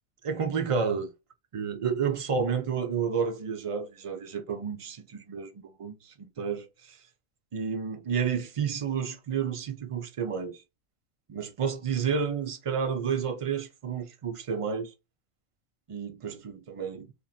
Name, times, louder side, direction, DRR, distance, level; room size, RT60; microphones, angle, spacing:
voice 1, 0.2-1.1 1.5-7.0 7.5-10.6 11.3-14.9 15.9-17.1, right 6 dB, 60° right, 0.3 m, -31 dB
3.9 x 2.2 x 2.3 m
omnidirectional pair, 1.2 m